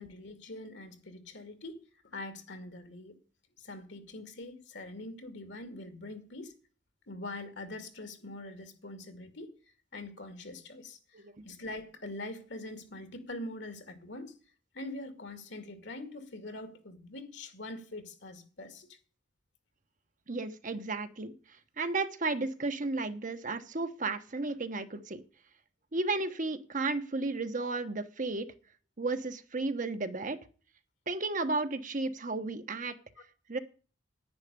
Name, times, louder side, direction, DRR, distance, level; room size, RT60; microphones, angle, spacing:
voice 1, 0.0-1.8 2.1-3.1 3.6-6.5 7.1-9.5 9.9-11.0 11.4-14.3 14.7-18.9, left 2 dB, 75° left, 2.2 m, -43 dB
voice 2, 20.3-21.3 21.8-25.2 25.9-28.5 29.0-30.4 31.1-33.0 33.5-33.6, right 3 dB, 45° right, 1.0 m, -33 dB
10.5 x 9.7 x 6.8 m
head